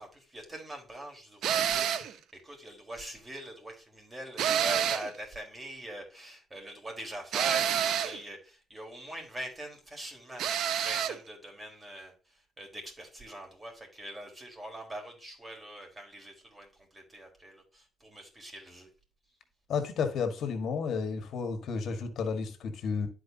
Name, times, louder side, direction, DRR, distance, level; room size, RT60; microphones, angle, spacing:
voice 1, 0.0-18.9, right 1 dB, 20° right, 4.0 m, -43 dB
sound 1, 1.4-2.1 4.4-5.2 7.3-8.2 10.4-11.2, right 9 dB, 75° right, 0.7 m, -28 dB
voice 2, 19.7-23.1, left 5 dB, 70° left, 1.6 m, -32 dB
12.0 x 4.7 x 2.8 m
cardioid pair, 90°, 0 cm